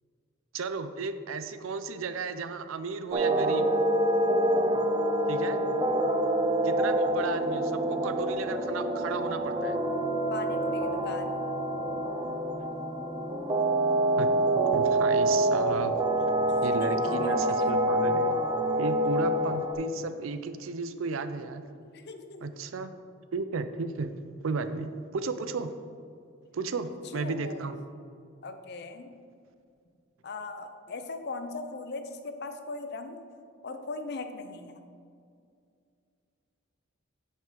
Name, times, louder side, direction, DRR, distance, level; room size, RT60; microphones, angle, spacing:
voice 1, 0.5-3.7 5.3-5.6 6.6-9.8 14.2-14.3 14.7-15.9 16.6-18.3 18.8-21.6 22.4-22.9 23.3-24.1 24.4-25.7 26.5-27.8, right 4 dB, 85° right, 11 dB, 0.5 m, -34 dB
sound 1, 3.1-19.7, right 1 dB, 20° right, 0.5 m, -26 dB
voice 2, 10.3-11.4 16.6-17.0 17.2-17.7 21.8-22.6 26.9-27.6 28.4-29.1 30.2-33.2 33.6-34.8, left 3 dB, 55° left, 8 dB, 0.6 m, -40 dB
8.9 x 5.4 x 3.8 m, 2.3 s
head